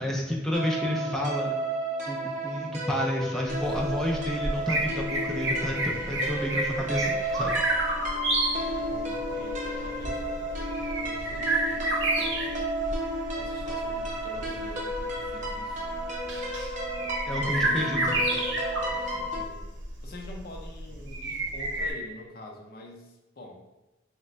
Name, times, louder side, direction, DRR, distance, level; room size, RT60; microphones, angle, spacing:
voice 1, 0.0-1.6 2.1-7.6 17.3-18.2, left 1 dB, ahead, -2 dB, 0.3 m, -30 dB
sound 1, 0.5-19.4, right 1 dB, 40° right, 0.6 m, -32 dB
sound 2, 3.2-14.7, equal, 35° left, 1.1 m, -50 dB
sound 3, 3.5-21.9, right 2 dB, 75° right, 0.7 m, -31 dB
voice 2, 8.6-12.5 13.4-15.9 16.9-19.6 20.0-23.6, left 1 dB, 55° left, 0 dB, 0.6 m, -46 dB
3.2 x 2.2 x 3.9 m, 1.0 s
head